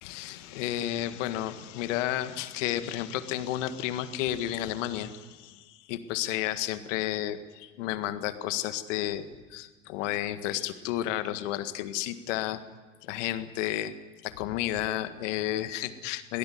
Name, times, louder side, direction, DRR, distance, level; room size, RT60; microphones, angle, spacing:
voice 1, 0.0-12.6 13.0-13.9 14.2-16.4, left 13 dB, 70° left, 11 dB, 1.8 m, -32 dB
22.0 x 18.0 x 9.5 m, 1.3 s
hypercardioid pair, 65°, 38 cm